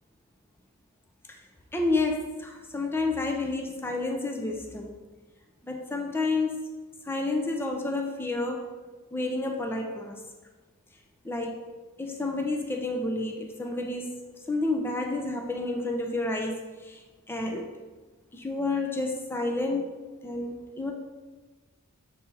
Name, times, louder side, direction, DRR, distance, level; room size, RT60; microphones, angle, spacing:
voice 1, 1.7-4.9 5.6-6.7 7.1-8.7 9.1-10.2 11.2-11.6 12.0-14.1 14.5-17.0 17.3-17.7 18.3-20.9, left 2 dB, 10° left, 2 dB, 0.4 m, -30 dB
6.9 x 4.2 x 3.8 m, 1.3 s
head